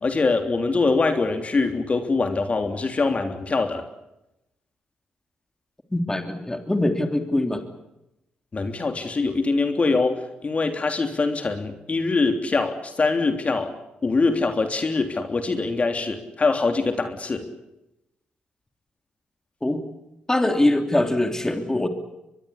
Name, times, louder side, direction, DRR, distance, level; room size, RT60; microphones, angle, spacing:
voice 1, 0.0-3.8 8.5-13.7 14.0-17.5, left 3 dB, 40° left, 6 dB, 3.2 m, -23 dB
voice 2, 5.9-7.6 19.6-19.9 20.3-21.9, left 1 dB, 15° left, 5 dB, 3.1 m, -23 dB
23.0 x 22.5 x 8.3 m, 0.89 s
supercardioid pair, 55°, 3 cm